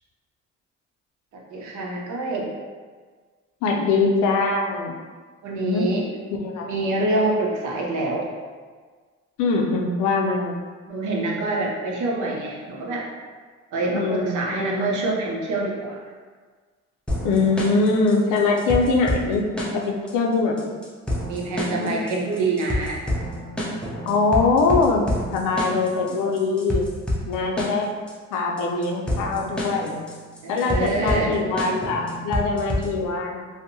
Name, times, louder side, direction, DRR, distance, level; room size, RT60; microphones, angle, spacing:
voice 1, 1.3-2.5 5.4-6.1 6.6-8.3 10.9-13.1 13.7-16.0 21.1-23.0 30.4-31.3, right 2 dB, 75° right, -3 dB, 0.6 m, -26 dB
voice 2, 3.6-5.0 5.5-5.9 6.4-6.7 9.4-10.6 13.9-14.9 17.2-19.5 19.7-20.8 21.8-22.0 24.0-26.8 27.3-27.9 28.3-30.0 30.5-33.5, left 3 dB, 90° left, 1 dB, 0.5 m, -22 dB
sound 1, 17.1-33.1, equal, 5° left, 0.5 m, -29 dB
2.6 x 2.1 x 2.6 m, 1.5 s
cardioid pair, 90°, 30 cm